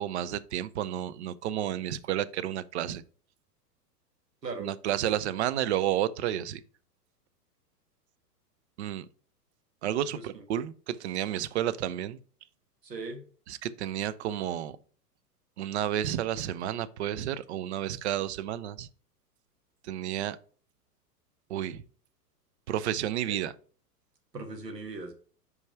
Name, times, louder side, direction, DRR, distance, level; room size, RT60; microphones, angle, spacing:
voice 1, 0.0-3.0 4.6-6.6 8.8-9.1 9.8-12.2 13.5-14.8 15.6-18.9 19.8-20.4 21.5-21.8 22.7-23.5, right 11 dB, 45° right, 0.5 m, -31 dB
voice 2, 12.8-13.2 23.3-23.4 24.3-25.1, right 3 dB, 80° right, 1.5 m, -39 dB
5.2 x 4.8 x 4.4 m
figure-of-eight pair, 105°, 48 cm